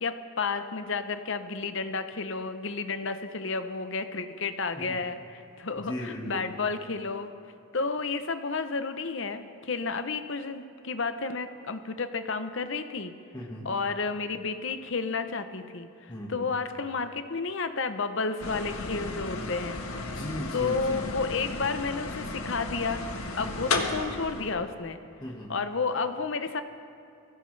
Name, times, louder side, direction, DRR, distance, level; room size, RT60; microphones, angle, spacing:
voice 1, 0.0-7.3 7.7-13.1 13.6-19.8 20.5-23.0 23.4-25.0 25.5-26.6, left 4 dB, 55° left, 9 dB, 0.8 m, -31 dB
voice 2, 5.8-6.4 13.3-13.7 16.1-16.5 20.0-21.1 23.4-23.7 25.2-25.5, left 1 dB, 20° left, -3 dB, 1.7 m, -37 dB
sound 1, 18.4-24.6, left 3 dB, 75° left, 1.3 m, -34 dB
23.0 x 16.0 x 3.3 m, 2.6 s
head